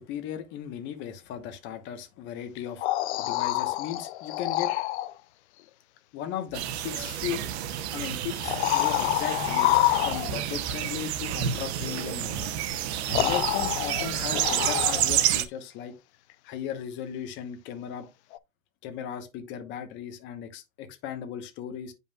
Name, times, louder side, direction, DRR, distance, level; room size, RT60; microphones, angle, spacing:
voice 1, 0.0-2.9 3.2-4.7 6.1-7.4 7.9-12.6 13.1-15.9 16.4-18.1 18.8-21.9, left 9 dB, 30° left, 1.0 m, -37 dB
sound 1, 2.6-5.1 7.0-7.1 8.4-10.6 12.5-12.6 13.1-15.3 18.3-18.4, left 16 dB, 60° left, 0.5 m, -27 dB
sound 2, 6.5-15.4, right 11 dB, 55° right, 0.8 m, -29 dB
9.1 x 5.5 x 2.3 m
supercardioid pair, 170°, 39 cm